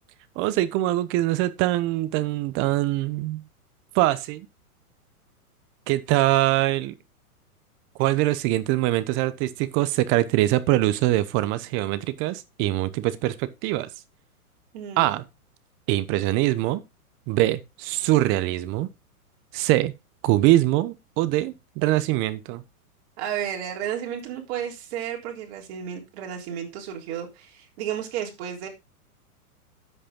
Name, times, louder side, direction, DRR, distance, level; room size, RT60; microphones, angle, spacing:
voice 1, 0.4-3.4 3.9-4.5 5.9-6.9 8.0-13.9 15.0-15.2 15.9-16.8 17.3-18.9 19.5-19.9 20.2-22.6, right 16 dB, 25° right, 0.8 m, -23 dB
voice 2, 14.7-15.1 23.2-28.7, right 9 dB, 45° right, 3.8 m, -32 dB
9.7 x 8.1 x 3.7 m
hypercardioid pair, 135°, 45 cm